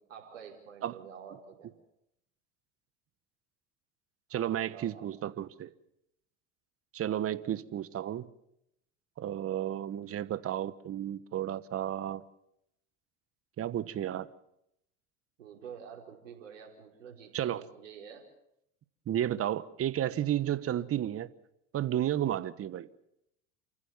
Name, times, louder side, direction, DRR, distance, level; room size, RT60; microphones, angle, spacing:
voice 1, 0.1-1.7 4.3-5.1 15.4-18.3, right 7 dB, 90° right, 4.6 m, -48 dB
voice 2, 4.3-5.7 6.9-8.3 9.2-12.2 13.6-14.3 17.3-17.6 19.1-21.3 21.7-22.9, right 11 dB, 40° right, 1.3 m, -32 dB
28.5 x 15.5 x 7.2 m
hypercardioid pair, 85°, 37 cm